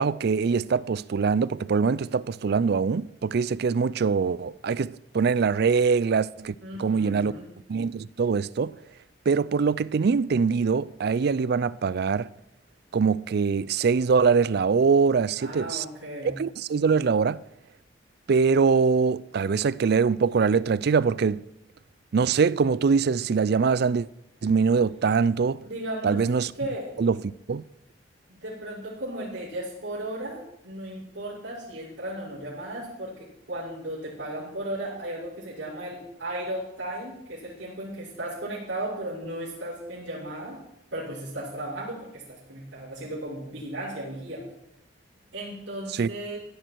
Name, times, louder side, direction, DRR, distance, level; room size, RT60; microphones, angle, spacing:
voice 1, 0.0-7.3 7.7-8.7 9.3-12.3 12.9-15.8 16.2-17.4 18.3-21.4 22.1-24.1 24.4-25.6 26.0-26.5 27.0-27.2 27.5-27.6 46.0-46.1, right 5 dB, 60° right, 0.4 m, -23 dB
voice 2, 6.6-7.5 15.4-16.4 25.6-26.2 26.5-26.9 28.3-40.6 40.9-44.4 45.3-46.4, right 1 dB, 85° right, 6.1 m, -35 dB
16.5 x 12.0 x 4.6 m
head